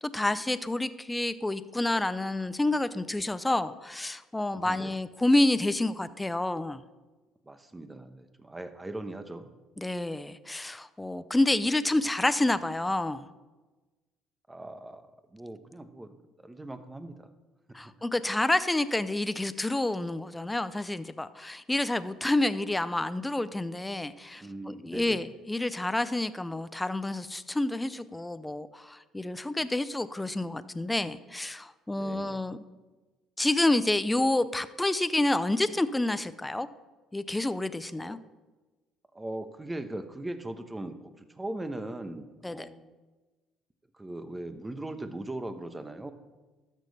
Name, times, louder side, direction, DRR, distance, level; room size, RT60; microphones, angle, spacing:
voice 1, 0.1-6.8 9.8-13.3 17.7-32.6 33.4-36.7 37.1-38.2 42.4-42.6, left 2 dB, 10° left, 14 dB, 0.5 m, -28 dB
voice 2, 4.5-4.9 7.4-9.5 14.5-16.1 16.4-17.3 17.8-17.9 24.4-25.2 31.9-32.4 38.0-38.3 39.1-42.8 43.9-46.1, right 1 dB, 15° right, 9 dB, 1.0 m, -40 dB
13.0 x 6.4 x 4.1 m, 1.2 s
hypercardioid pair, 60°, 0 cm